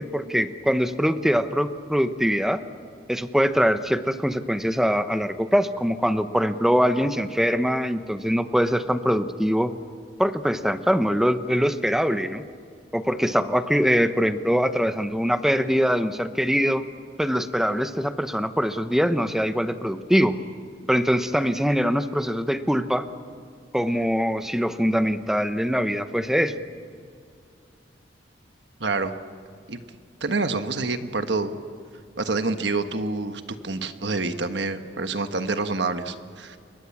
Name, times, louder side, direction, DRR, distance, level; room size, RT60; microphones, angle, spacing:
voice 1, 0.0-2.6 3.1-9.7 10.2-12.4 12.9-16.8 17.2-20.4 20.9-23.1 23.7-26.5, equal, ahead, 10 dB, 0.9 m, -23 dB
voice 2, 28.8-29.1 29.7-29.8 30.2-31.6 32.2-36.6, right 3 dB, 70° right, 8 dB, 1.4 m, -27 dB
29.0 x 22.0 x 7.3 m, 2.2 s
head